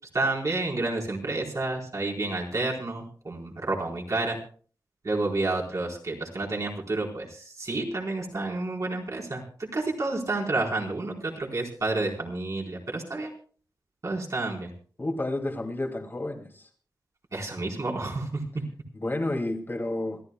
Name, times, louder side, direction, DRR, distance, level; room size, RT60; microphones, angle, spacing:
voice 1, 0.1-4.4 5.0-13.3 14.0-14.7 17.3-18.6, right 2 dB, 50° right, -1 dB, 4.5 m, -30 dB
voice 2, 15.0-16.7 18.9-20.2, left 2 dB, 30° left, 1 dB, 2.7 m, -30 dB
27.0 x 13.5 x 2.4 m, 0.41 s
wide cardioid pair, 110°, 7 cm